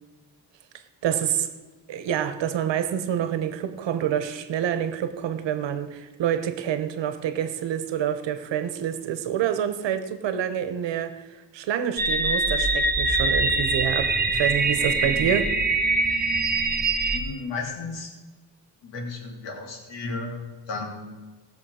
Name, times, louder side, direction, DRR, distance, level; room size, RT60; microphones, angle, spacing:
voice 1, 1.0-1.5 1.9-11.2 11.5-15.5, right 9 dB, 90° right, 1.1 m, -27 dB
sound 1, 12.0-17.2, right 3 dB, 20° right, 1.4 m, -23 dB
voice 2, 17.1-18.1 18.8-21.1, left 3 dB, 85° left, 3.1 m, -34 dB
18.5 x 7.0 x 4.9 m
cardioid pair, 95°, 42 cm